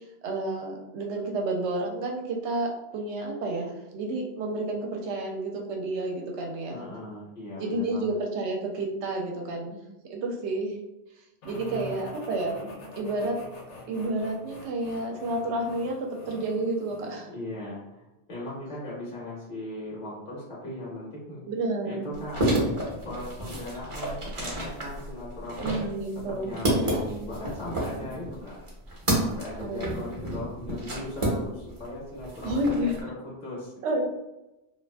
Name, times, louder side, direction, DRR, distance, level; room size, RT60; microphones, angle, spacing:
voice 1, 0.2-6.8 7.6-9.8 10.1-10.7 11.4-13.4 13.9-17.3 21.5-22.1 25.6-26.6 29.6-30.0 32.4-33.0 33.8-34.0, right 2 dB, 75° right, 2 dB, 0.8 m, -30 dB
voice 2, 6.7-8.1 11.5-12.1 17.3-21.4 21.8-22.6 23.0-25.8 26.3-28.6 29.2-33.7, left 1 dB, 45° left, -7 dB, 0.8 m, -38 dB
sound 1, 11.4-17.2, left 2 dB, 75° left, 0.9 m, -46 dB
sound 2, 22.1-31.9 32.2-33.0, right 1 dB, 35° right, 0.6 m, -30 dB
2.4 x 2.3 x 2.2 m, 0.96 s
omnidirectional pair, 1.2 m